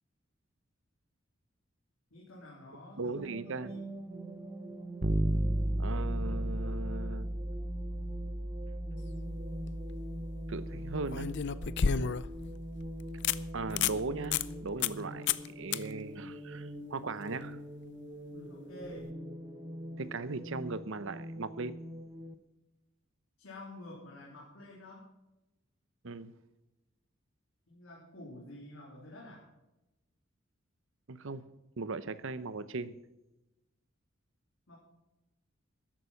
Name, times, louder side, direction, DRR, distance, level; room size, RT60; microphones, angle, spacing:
voice 1, 2.1-3.9 18.3-19.1 23.4-25.1 27.7-29.4 34.7-34.8, left 1 dB, 75° left, -4 dB, 3.5 m, -49 dB
voice 2, 3.0-3.7 5.8-7.3 10.5-11.3 13.5-17.6 20.0-21.8 26.0-26.3 31.1-31.4 31.8-33.0, right 3 dB, 70° right, 15 dB, 0.8 m, -38 dB
sound 1, 3.2-22.3, right 1 dB, 20° right, 1.0 m, -44 dB
Bass guitar, 5.0-14.7, right 1 dB, 45° right, 1.3 m, -36 dB
sound 2, 9.4-9.7 11.1-12.4 12.8-12.9 13.2-13.4 13.7-14.0 14.3-14.5 14.8-15.0 15.3-15.5 15.7-15.8 18.9-19.0, left 7 dB, 60° left, 0.5 m, -30 dB
13.5 x 11.0 x 5.8 m, 0.98 s
head